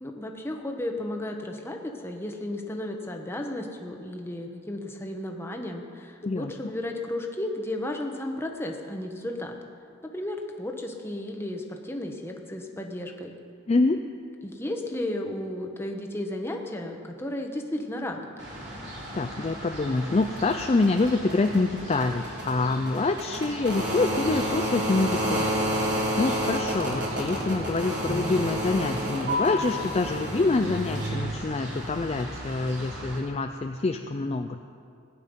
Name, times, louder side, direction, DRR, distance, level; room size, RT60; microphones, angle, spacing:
voice 1, 0.0-9.5 10.1-13.3 14.4-18.3, left 1 dB, 10° left, 2 dB, 1.1 m, -34 dB
voice 2, 13.7-14.0 19.1-25.4 25.8-34.6, left 3 dB, 30° left, 6 dB, 0.4 m, -26 dB
sound 1, 18.4-33.2, equal, 55° right, 3.3 m, -31 dB
17.5 x 9.7 x 5.4 m, 2.4 s
head